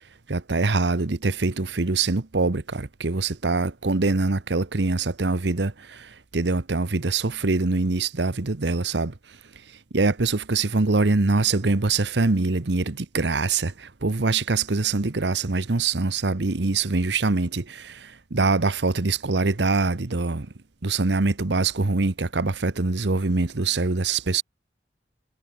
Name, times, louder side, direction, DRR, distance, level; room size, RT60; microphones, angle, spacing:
voice 1, 0.3-9.1 9.9-20.5 20.8-24.4, right 3 dB, 75° right, 1.0 m, -24 dB
head